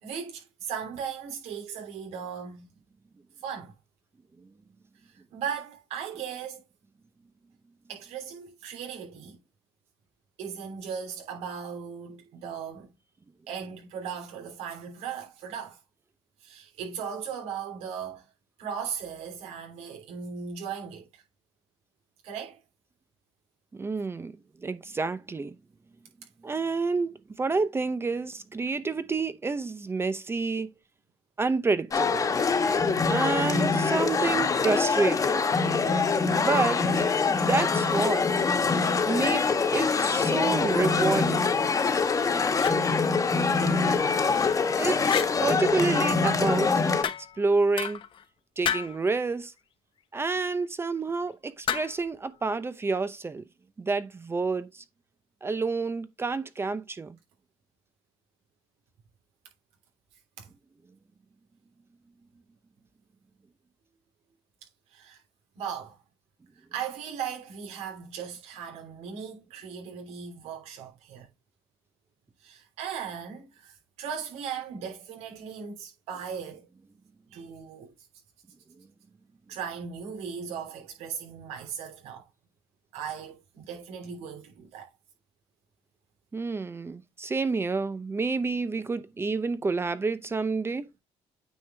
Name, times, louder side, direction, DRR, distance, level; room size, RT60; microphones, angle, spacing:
voice 1, 0.0-2.7 3.4-3.7 5.1-6.6 7.9-9.4 10.4-12.9 13.5-15.8 16.4-18.2 18.6-21.2 22.2-22.6 60.4-60.5 64.9-65.2 65.5-66.0 66.7-71.3 72.4-76.7 77.3-77.9 79.5-82.2 82.9-84.9, right 7 dB, 85° right, 3.3 m, -37 dB
voice 2, 23.7-24.3 24.6-25.6 26.4-30.7 31.4-32.3 33.1-35.4 36.3-36.8 37.3-38.3 39.1-39.5 39.7-41.4 44.8-46.7 47.0-48.0 48.6-49.5 50.1-53.5 53.8-54.8 55.4-57.2 86.3-90.9, right 4 dB, 20° right, 0.7 m, -29 dB
sound 1, 31.9-47.0, left 4 dB, 30° left, 1.4 m, -24 dB
sound 2, 42.1-42.8 44.2-44.6 45.0-45.3 47.0-47.4 47.8-48.2 48.6-49.0 51.7-52.1, left 9 dB, 50° left, 0.9 m, -32 dB
9.1 x 5.0 x 3.4 m
cardioid pair, 100°, 11 cm